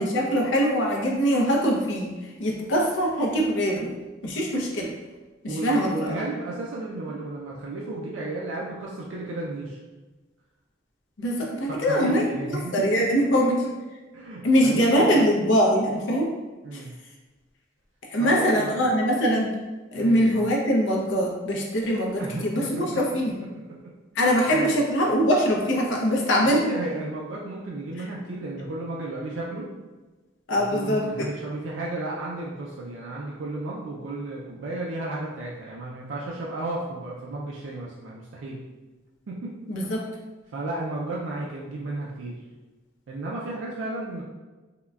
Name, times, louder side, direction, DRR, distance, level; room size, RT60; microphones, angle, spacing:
voice 1, 0.0-3.9 4.2-4.9 5.4-6.2 11.2-13.6 14.4-16.3 16.7-16.8 18.1-19.5 19.9-23.4 24.1-26.6 30.5-31.3 39.7-40.0, equal, 70° left, 0 dB, 0.5 m, -23 dB
voice 2, 5.5-9.8 11.7-12.9 14.1-15.3 16.6-16.9 18.2-18.7 20.0-20.4 22.2-23.2 23.8-23.9 24.5-24.8 26.4-29.7 30.6-38.6 39.3-39.6 40.5-42.4 43.1-44.2, right 2 dB, 75° right, -4 dB, 0.4 m, -33 dB
3.6 x 2.1 x 2.2 m, 1.2 s
head